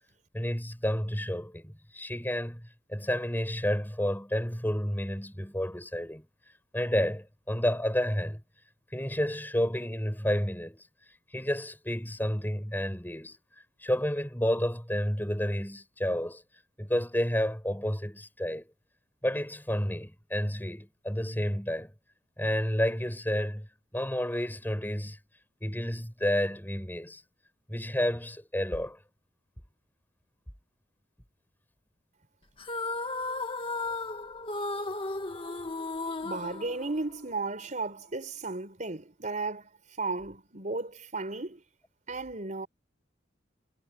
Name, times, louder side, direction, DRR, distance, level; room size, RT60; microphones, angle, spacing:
voice 1, 0.3-6.2 6.7-8.4 8.9-10.8 11.3-13.4 13.8-16.4 16.8-18.7 19.2-21.9 22.4-23.7 23.9-25.2 25.6-27.2 27.7-29.0, equal, 10° left, 7.6 m, -30 dB
sound 1, 32.6-37.4, left 3 dB, 30° left, 1.8 m, -35 dB
voice 2, 36.2-39.7 40.0-41.6 42.1-42.7, right 3 dB, 45° right, 4.9 m, -34 dB
head